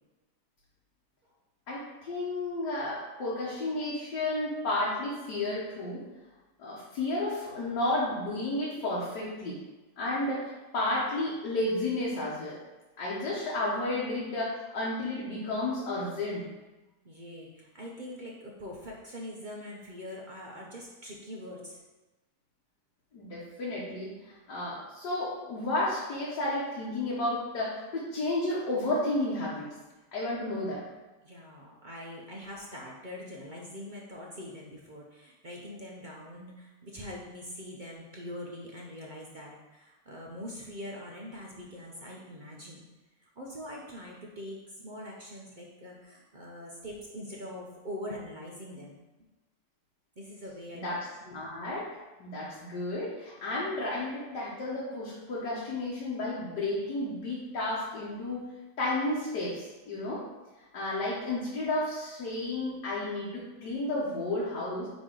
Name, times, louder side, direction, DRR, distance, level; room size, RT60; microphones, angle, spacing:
voice 1, 1.7-6.0 6.6-9.6 10.0-12.6 13.0-16.4 23.1-29.7 30.1-30.8 50.8-51.9 52.2-58.5 58.8-60.2 60.7-64.9, left 2 dB, 75° left, -7 dB, 1.8 m, -32 dB
voice 2, 17.0-21.8 31.2-42.8 43.2-49.0 50.2-50.9, left 1 dB, 45° right, -3 dB, 0.6 m, -43 dB
9.1 x 3.0 x 3.8 m, 1.1 s
omnidirectional pair, 1.8 m